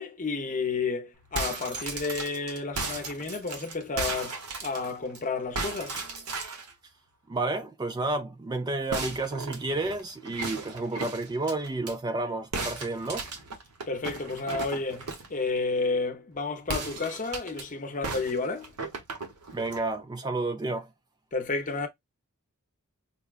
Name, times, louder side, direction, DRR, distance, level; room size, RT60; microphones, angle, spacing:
voice 1, 0.0-6.0 13.9-18.7 21.3-21.9, left 4 dB, 35° left, 0.8 m, -31 dB
sound 1, 1.2-5.2 5.6-6.7 8.9-11.9 12.5-15.4 16.6-17.6 18.0-19.8, right 3 dB, 80° right, 1.0 m, -36 dB
voice 2, 7.3-13.3 19.5-20.9, right 2 dB, 20° right, 0.3 m, -31 dB
5.3 x 2.2 x 2.4 m
head